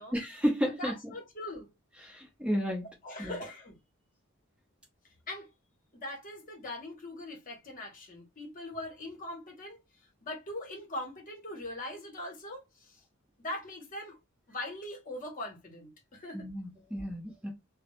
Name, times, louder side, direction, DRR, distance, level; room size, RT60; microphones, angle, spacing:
voice 1, 0.1-0.9 2.0-2.9 3.2-3.3 16.3-17.5, equal, 5° right, 0.6 m, -32 dB
voice 2, 0.6-1.7 3.0-3.8 5.3-5.5 5.9-9.8 10.2-13.0 13.4-14.2 14.5-16.5 16.8-17.0 17.3-17.4, left 1 dB, 40° left, 0.8 m, -41 dB
2.2 x 2.0 x 2.9 m
head